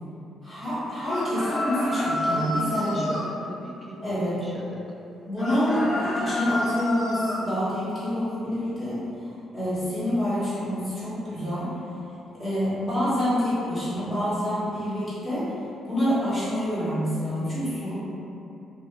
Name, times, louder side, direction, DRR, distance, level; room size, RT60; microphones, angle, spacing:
voice 1, 0.4-3.1 4.0-4.4 5.3-9.0 9.5-11.7 12.4-15.5 15.8-18.0, equal, 35° left, -13 dB, 1.2 m, -27 dB
sound 1, 1.0-3.3 5.4-7.4, left 1 dB, 65° left, 1.0 m, -29 dB
voice 2, 2.4-3.2 3.4-4.8, right 1 dB, 20° right, -2 dB, 0.3 m, -38 dB
2.5 x 2.4 x 2.9 m, 2.8 s
cardioid pair, 90°, 0 cm